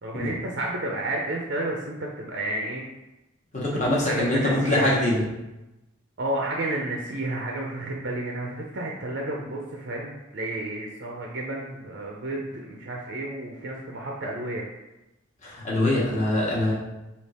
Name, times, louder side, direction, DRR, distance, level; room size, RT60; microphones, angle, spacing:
voice 1, 0.0-2.8 3.7-4.9 6.2-14.7, right 1 dB, 50° right, -1 dB, 0.5 m, -31 dB
voice 2, 3.5-5.2 15.4-16.7, left 1 dB, 35° left, -6 dB, 1.2 m, -23 dB
3.3 x 2.9 x 4.2 m, 0.98 s
head